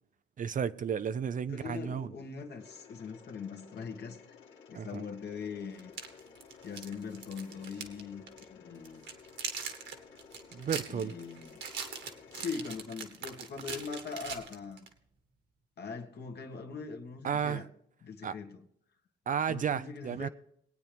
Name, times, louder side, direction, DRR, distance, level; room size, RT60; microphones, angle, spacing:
voice 1, 0.4-2.1 4.7-5.0 10.5-11.1 17.2-17.7 18.2-18.3 19.3-20.3, right 7 dB, 40° right, 0.5 m, -33 dB
voice 2, 1.5-4.4 4.7-5.9 6.6-8.2 8.5-9.0 10.9-11.6 12.3-14.9 15.8-17.7 18.0-18.6 19.5-20.3, left 5 dB, 55° left, 1.6 m, -41 dB
Mechanisms, 2.6-12.7, left 6 dB, 75° left, 2.1 m, -55 dB
sound 1, 4.9-5.0 5.8-8.0 8.3-8.4 8.8-14.9, right 6 dB, 70° right, 1.8 m, -41 dB
20.5 x 9.0 x 3.4 m
cardioid pair, 90°, 20 cm